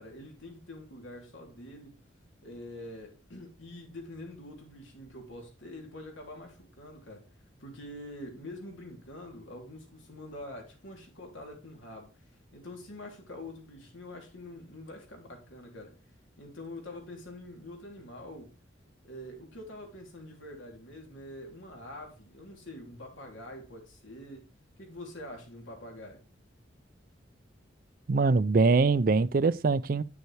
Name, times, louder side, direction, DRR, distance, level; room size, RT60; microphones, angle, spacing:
voice 1, 0.0-2.0 2.4-7.2 7.6-12.2 12.5-16.0 16.4-18.5 19.0-24.5 24.8-26.2, left 1 dB, 85° left, 3.0 m, -45 dB
voice 2, 28.1-30.0, right 4 dB, 45° right, 0.4 m, -23 dB
9.1 x 7.0 x 3.2 m
head